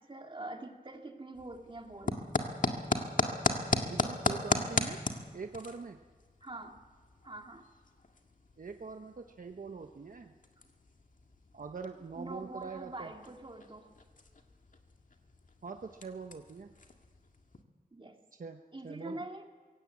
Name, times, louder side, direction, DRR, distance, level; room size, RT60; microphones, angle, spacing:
voice 1, 0.0-2.2 6.4-6.8 7.2-7.7 12.1-13.9 17.9-18.2 18.7-19.5, right 2 dB, 35° right, 3 dB, 2.3 m, -44 dB
sound 1, 1.3-17.6, left 3 dB, 60° left, 1.8 m, -37 dB
voice 2, 3.9-5.0 5.3-6.0 8.6-10.3 11.5-13.1 15.6-16.7 18.4-18.6 18.8-19.2, right 5 dB, 65° right, 5 dB, 1.0 m, -43 dB
22.5 x 17.0 x 8.6 m, 1.4 s
wide cardioid pair, 95°, 15 cm